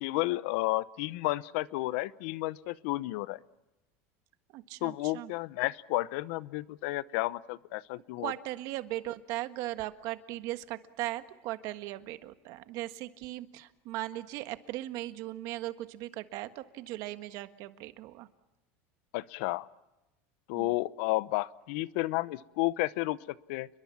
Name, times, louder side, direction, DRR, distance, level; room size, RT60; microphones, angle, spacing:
voice 1, 0.0-3.4 4.8-8.3 19.1-19.7 20.5-23.7, left 19 dB, 70° left, 18 dB, 0.8 m, -32 dB
voice 2, 4.5-5.3 8.2-18.3 20.5-20.8, right 16 dB, 55° right, 10 dB, 1.6 m, -38 dB
29.5 x 22.5 x 7.2 m, 1.0 s
supercardioid pair, 145°, 7 cm